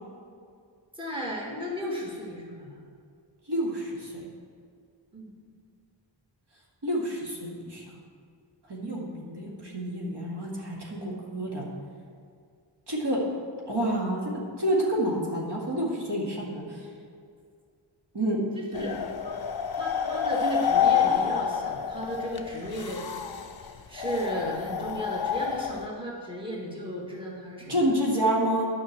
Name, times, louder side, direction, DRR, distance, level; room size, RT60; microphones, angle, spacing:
voice 1, 1.0-2.8 5.1-5.2 8.8-9.0 18.5-19.0 19.8-23.0 23.9-27.8, equal, 10° right, -4 dB, 1.9 m, -34 dB
voice 2, 3.5-4.2 6.8-7.8 8.7-11.7 12.9-13.2 13.7-14.3 14.6-16.9 18.1-18.4 18.7-18.8 27.7-28.7, right 1 dB, 60° right, -4 dB, 2.2 m, -28 dB
sound 1, 18.7-25.9, left 8 dB, 55° left, 0.7 m, -28 dB
10.0 x 5.7 x 7.4 m, 2.2 s
wide cardioid pair, 95°, 45 cm